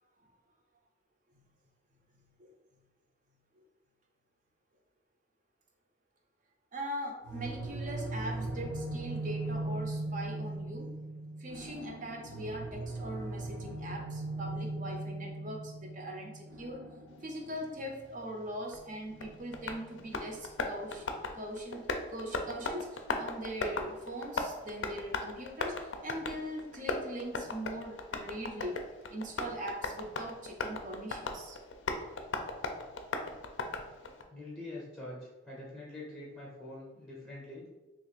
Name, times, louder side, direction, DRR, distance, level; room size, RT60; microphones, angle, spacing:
voice 1, 2.1-2.5 6.7-10.9 11.4-16.8 17.2-21.1 21.3-28.8 29.1-31.6 32.9-33.0 33.9-34.0, equal, 40° right, 1 dB, 0.5 m, -41 dB
sound 1, 7.2-20.0, right 2 dB, 85° right, 0.8 m, -39 dB
Tap, 18.7-34.2, left 3 dB, 65° left, 0.4 m, -38 dB
voice 2, 34.3-37.6, left 2 dB, 10° left, -7 dB, 0.6 m, -45 dB
3.0 x 2.4 x 4.0 m, 1.1 s
head